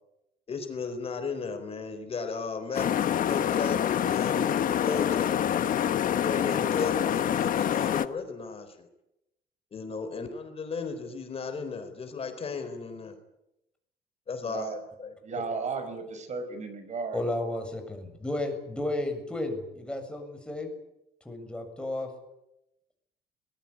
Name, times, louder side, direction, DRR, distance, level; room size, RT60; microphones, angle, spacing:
voice 1, 0.5-5.4 6.0-8.9 9.7-13.2 14.3-15.1, left 5 dB, 35° left, 8 dB, 4.1 m, -35 dB
sound 1, 2.7-8.1, left 9 dB, 55° left, 1.3 m, -26 dB
voice 2, 14.4-14.8 15.2-17.2, right 4 dB, 45° right, 10 dB, 5.6 m, -34 dB
voice 3, 17.1-20.7 21.2-22.1, left 1 dB, 5° left, 4 dB, 7.2 m, -33 dB
22.0 x 21.0 x 9.9 m, 0.87 s
cardioid pair, 110°, 17 cm